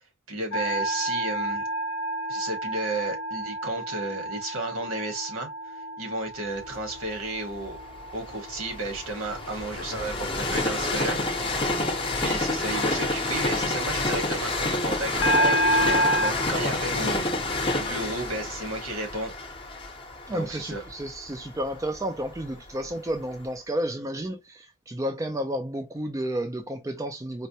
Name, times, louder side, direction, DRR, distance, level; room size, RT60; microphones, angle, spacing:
voice 1, 0.3-1.6 2.3-7.8 8.1-11.2 12.2-17.2 17.7-19.3 20.3-20.8, right 2 dB, 75° right, 1.2 m, -33 dB
sound 1, 0.5-8.8 9.3-9.6 15.2-16.3, right 1 dB, 60° left, 0.6 m, -29 dB
Train, 6.8-22.7 23.3-23.4, left 2 dB, 25° left, 0.7 m, -29 dB
voice 2, 20.3-27.5, right 1 dB, 15° right, 0.3 m, -31 dB
4.3 x 2.1 x 2.7 m
head